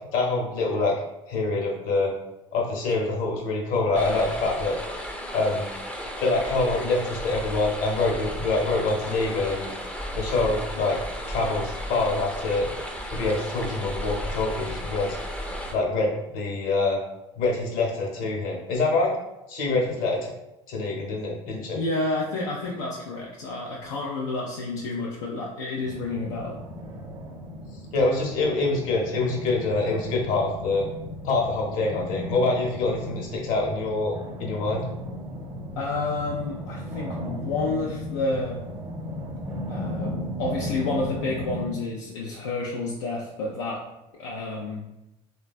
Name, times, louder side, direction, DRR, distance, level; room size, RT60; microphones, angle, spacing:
voice 1, 0.1-1.0 1.3-2.1 2.5-4.8 5.3-5.7 6.2-9.7 10.1-11.0 11.3-12.7 13.1-15.2 15.7-17.0 17.4-19.2 19.5-20.3 20.7-21.8 27.9-30.9 31.2-34.1 34.4-34.8, left 3 dB, 65° left, -1 dB, 0.9 m, -25 dB
sound 1, 3.9-15.7, equal, 10° left, 0.5 m, -34 dB
voice 2, 21.7-26.6 35.8-38.6 39.7-43.8 44.1-44.8, left 2 dB, 85° left, -3 dB, 0.4 m, -30 dB
sound 2, 25.8-41.6, left 1 dB, 35° right, 0.7 m, -36 dB
3.2 x 2.2 x 2.3 m, 0.91 s
hypercardioid pair, 75°, 16 cm